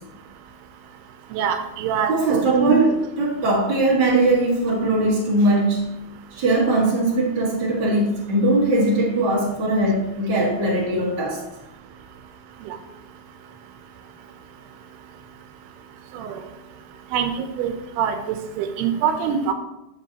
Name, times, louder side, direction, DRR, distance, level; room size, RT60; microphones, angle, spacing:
voice 1, 1.3-2.7 12.6-12.8 16.1-16.4 17.1-19.5, right 7 dB, 85° right, 8 dB, 2.8 m, -24 dB
voice 2, 2.1-5.9 6.3-11.4, right 2 dB, 55° right, -4 dB, 1.1 m, -20 dB
10.5 x 5.5 x 2.9 m, 0.93 s
omnidirectional pair, 4.6 m